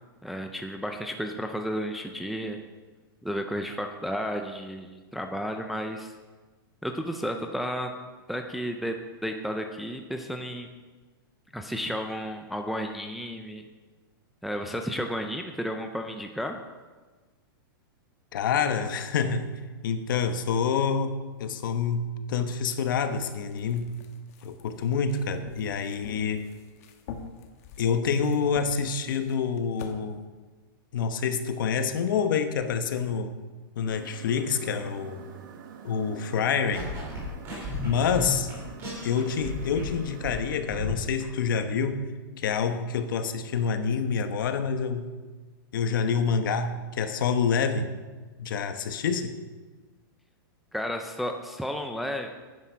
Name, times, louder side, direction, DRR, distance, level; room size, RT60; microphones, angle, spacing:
voice 1, 0.2-2.6 3.2-6.1 6.8-7.9 8.3-9.0 9.2-10.7 11.5-13.6 14.4-16.6 50.7-52.3, equal, ahead, 4 dB, 0.3 m, -32 dB
voice 2, 18.3-19.5 19.8-24.0 24.4-26.5 27.8-30.2 30.9-33.4 33.8-35.2 35.8-36.9 37.8-38.5 39.0-42.1 42.4-45.2 45.7-47.9 48.4-49.4, left 6 dB, 60° left, 9 dB, 1.1 m, -27 dB
sound 1, 23.0-29.9, left 6 dB, 40° left, 1.1 m, -47 dB
sound 2, 33.8-40.4, right 7 dB, 55° right, 1.4 m, -46 dB
sound 3, 36.7-40.0 40.2-41.2, left 2 dB, 20° right, 4.0 m, -35 dB
9.9 x 9.7 x 6.1 m, 1.3 s
supercardioid pair, 175°, 12 cm